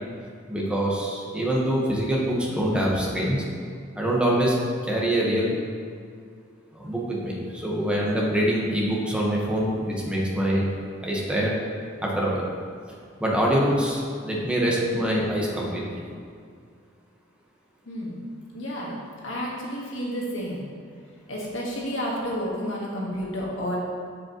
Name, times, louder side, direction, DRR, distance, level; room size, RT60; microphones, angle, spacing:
voice 1, 0.5-3.4 3.9-4.5 4.8-5.5 6.7-10.7 11.0-11.5 12.0-12.4 13.2-15.8, right 1 dB, 5° right, -4 dB, 1.2 m, -24 dB
voice 2, 17.8-18.2 18.5-19.0 19.2-20.6 21.3-23.8, equal, 85° left, -4 dB, 1.6 m, -30 dB
7.6 x 7.3 x 3.0 m, 2.2 s
head